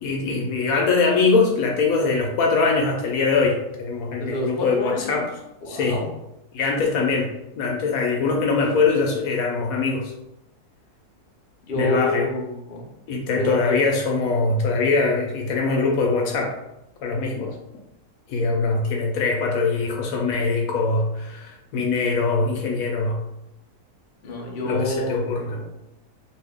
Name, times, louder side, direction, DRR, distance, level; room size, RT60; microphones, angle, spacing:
voice 1, 0.0-5.3 5.7-6.0 6.5-7.3 7.6-10.1 11.7-12.3 13.1-16.5 17.0-17.5 18.3-23.2 24.6-25.6, left 4 dB, 70° left, 1 dB, 1.0 m, -22 dB
voice 2, 4.2-5.2 5.6-6.1 11.6-12.9 13.3-13.8 24.2-25.6, left 2 dB, 55° left, 0 dB, 0.7 m, -28 dB
2.6 x 2.6 x 3.5 m, 0.88 s
omnidirectional pair, 1.6 m